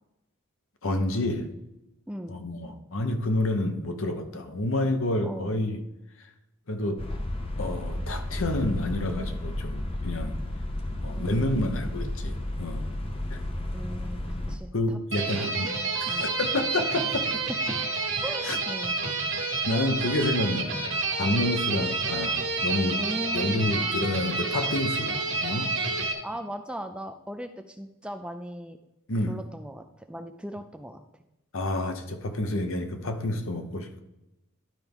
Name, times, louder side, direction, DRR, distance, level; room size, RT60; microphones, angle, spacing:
voice 1, 0.8-1.5 2.3-5.8 6.7-7.0 7.6-10.4 11.0-12.9 13.3-13.4 14.7-15.7 16.2-17.3 18.4-18.6 19.6-23.0 23.3-25.7 29.1-29.4 31.5-34.0, left 1 dB, 65° left, 0.9 m, -29 dB
voice 2, 2.1-2.4 5.2-5.6 11.2-11.9 13.7-15.0 15.2-15.7 16.1-16.2 18.2-19.0 23.0-24.0 26.2-28.8 29.3-31.0, equal, 5° right, 0.3 m, -38 dB
sound 1, 7.0-14.6, left 1 dB, 25° left, 0.7 m, -32 dB
sound 2, 15.1-26.1, right 3 dB, 60° right, 1.6 m, -29 dB
12.0 x 4.6 x 3.5 m
head